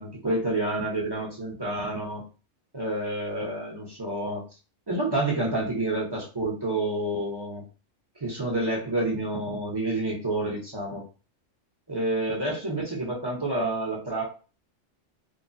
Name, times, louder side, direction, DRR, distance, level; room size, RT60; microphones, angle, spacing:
voice 1, 0.0-2.2 2.7-4.4 4.9-7.6 8.2-11.0 11.9-14.2, right 2 dB, 25° right, -3 dB, 0.6 m, -29 dB
2.9 x 2.1 x 2.5 m, 0.35 s
omnidirectional pair, 1.3 m